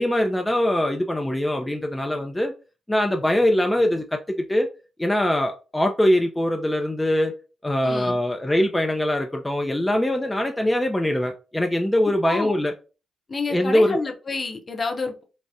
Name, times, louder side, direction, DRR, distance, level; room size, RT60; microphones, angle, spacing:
voice 1, 0.0-2.5 2.9-4.2 4.5-4.7 5.0-7.3 7.6-12.7 13.5-14.0, left 1 dB, 15° left, 0.4 m, -22 dB
voice 2, 7.8-8.2 12.2-12.6 13.3-15.2, left 3 dB, 45° left, 0.7 m, -29 dB
3.4 x 2.0 x 2.6 m
supercardioid pair, 45°, 0 cm